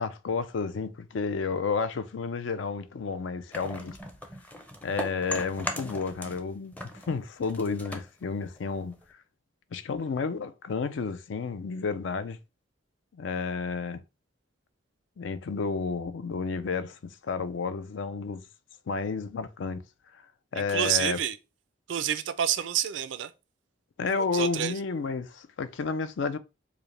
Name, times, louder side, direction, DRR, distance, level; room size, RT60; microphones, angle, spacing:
voice 1, 0.0-4.0 4.8-9.0 9.7-12.4 13.1-14.0 15.2-18.4 18.9-19.8 20.5-21.2 24.0-26.4, left 4 dB, 75° left, 0.4 m, -31 dB
sound 1, 3.5-6.5 6.7-9.1, left 1 dB, 10° left, 0.5 m, -38 dB
voice 2, 20.5-21.4 21.9-23.3 24.2-24.7, right 10 dB, 70° right, 0.4 m, -28 dB
4.8 x 2.1 x 3.1 m
head